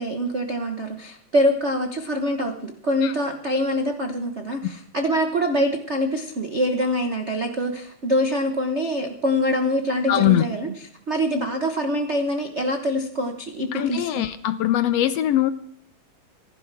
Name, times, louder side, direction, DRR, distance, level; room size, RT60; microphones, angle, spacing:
voice 1, 0.0-14.2, equal, 60° right, 5 dB, 0.7 m, -24 dB
voice 2, 10.1-10.4 13.7-15.5, left 12 dB, 75° left, 12 dB, 1.6 m, -21 dB
26.5 x 11.5 x 3.5 m, 0.67 s
omnidirectional pair, 3.3 m